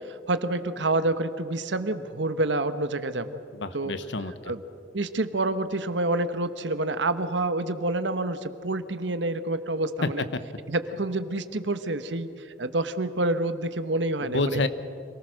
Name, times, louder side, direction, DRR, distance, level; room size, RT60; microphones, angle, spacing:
voice 1, 0.1-3.4 3.7-3.9 4.5-4.6 4.9-10.2 10.7-14.7, right 2 dB, 80° right, 11 dB, 1.2 m, -28 dB
voice 2, 3.5-4.5 10.0-10.1 14.2-14.7, left 3 dB, 80° left, 12 dB, 1.1 m, -28 dB
26.0 x 19.0 x 6.5 m, 2.6 s
head